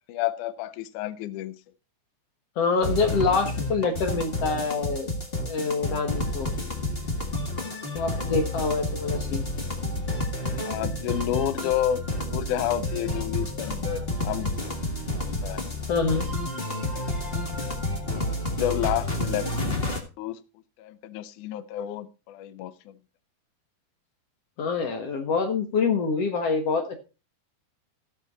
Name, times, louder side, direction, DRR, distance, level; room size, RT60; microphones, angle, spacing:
voice 1, 0.1-1.5 10.6-12.0 12.3-13.8 14.2-14.5 15.4-15.6 18.0-20.4 20.8-22.9, left 12 dB, 85° left, 1.7 m, -30 dB
voice 2, 2.6-5.1 5.4-6.5 7.9-9.5 13.8-14.1 15.9-16.3 24.6-27.1, left 4 dB, 65° left, 1.6 m, -26 dB
sound 1, 2.8-20.0, left 1 dB, 40° left, 0.8 m, -30 dB
15.5 x 6.5 x 3.9 m
omnidirectional pair, 4.4 m